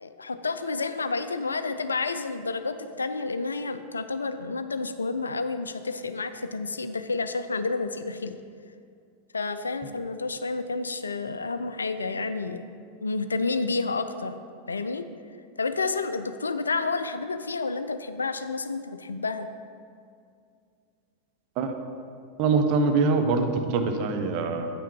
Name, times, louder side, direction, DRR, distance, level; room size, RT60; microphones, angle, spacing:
voice 1, 0.0-8.4 9.3-12.7 13.0-14.4 14.7-15.0 15.6-19.5, left 3 dB, 75° left, 11 dB, 0.3 m, -30 dB
voice 2, 22.4-24.7, right 4 dB, 40° right, 5 dB, 0.8 m, -24 dB
8.4 x 5.7 x 4.5 m, 2.4 s
figure-of-eight pair, 90°, 0 cm